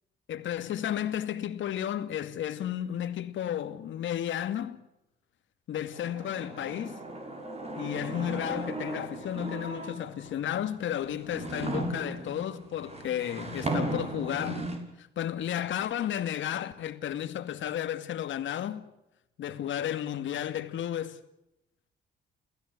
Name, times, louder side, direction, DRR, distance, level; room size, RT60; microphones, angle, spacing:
voice 1, 0.3-4.8 5.7-7.0 7.7-14.6 15.0-18.9 19.4-21.2, left 10 dB, 75° left, 2.3 m, -33 dB
sound 1, 5.9-10.3 10.9-14.8, right 2 dB, 30° right, 6.7 m, -36 dB
29.0 x 16.0 x 9.7 m
cardioid pair, 90°, 20 cm